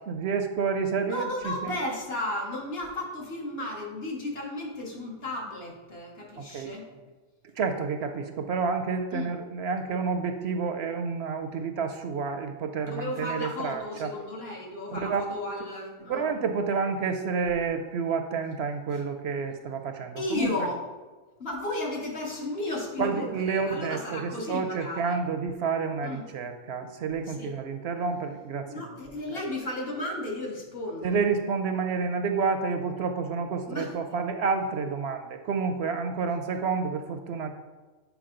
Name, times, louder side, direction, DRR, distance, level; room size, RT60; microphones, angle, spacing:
voice 1, 0.1-1.8 6.4-6.7 7.6-14.1 14.9-15.2 16.1-20.5 23.0-28.8 29.3-29.4 31.0-37.5, right 5 dB, 65° right, 7 dB, 0.8 m, -29 dB
voice 2, 1.0-7.0 9.1-9.3 12.8-16.3 18.9-19.0 20.2-20.9 21.4-25.2 26.0-26.2 27.2-27.5 28.7-31.2 33.7-33.9, left 2 dB, 55° left, -2 dB, 1.5 m, -34 dB
7.1 x 4.8 x 3.8 m, 1.3 s
omnidirectional pair, 1.2 m